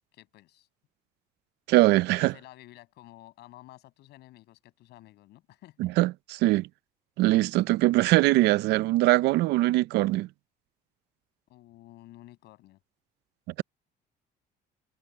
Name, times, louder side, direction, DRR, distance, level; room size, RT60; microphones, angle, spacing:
voice 1, 0.1-0.7 2.2-5.9 11.5-12.8, left 16 dB, 80° left, 7.5 m, -52 dB
voice 2, 1.7-2.3 5.8-6.7 7.2-10.3, right 18 dB, 90° right, 0.6 m, -22 dB
cardioid pair, 110°, 17 cm